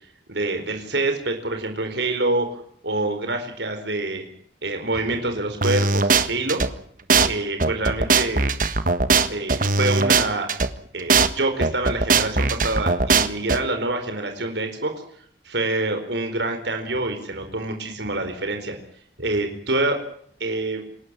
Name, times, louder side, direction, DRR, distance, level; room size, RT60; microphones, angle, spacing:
voice 1, 0.3-2.6 2.8-4.2 4.6-6.6 7.2-8.5 9.3-10.5 10.9-14.9 15.4-18.8 19.2-20.0 20.4-20.8, right 2 dB, 75° right, 5 dB, 4.5 m, -26 dB
sound 1, 5.6-6.7 7.1-7.3 7.6-10.7 11.1-11.3 11.6-13.6, right 4 dB, 50° right, 1.5 m, -19 dB
28.0 x 13.0 x 9.8 m, 0.62 s
head